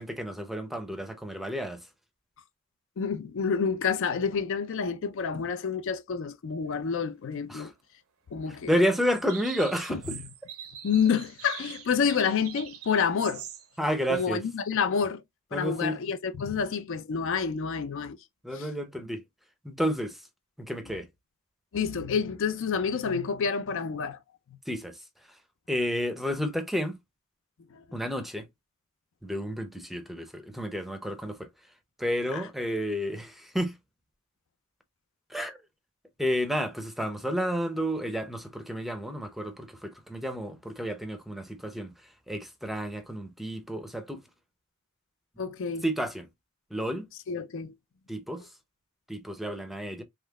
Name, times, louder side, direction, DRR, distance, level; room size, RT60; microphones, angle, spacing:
voice 1, 0.0-1.8 7.5-7.7 8.5-10.2 13.8-14.4 15.5-16.0 18.4-19.2 19.6-20.2 20.6-21.1 24.7-25.0 25.7-27.0 27.9-28.5 29.2-31.5 32.0-33.7 35.3-35.6 36.2-44.2 45.8-46.3 46.7-47.1 48.1-48.5 49.1-50.0, equal, ahead, 0.5 m, -31 dB
voice 2, 3.0-7.7 8.3-8.7 9.9-10.2 10.8-13.4 14.1-15.2 15.5-18.2 18.6-18.7 21.7-24.2 27.7-27.8 32.3-32.4 45.4-45.8 47.3-47.7, left 6 dB, 65° left, 0.4 m, -28 dB
sound 1, 8.6-8.7 8.9-13.8, right 9 dB, 80° right, 0.6 m, -43 dB
3.6 x 3.1 x 2.2 m
head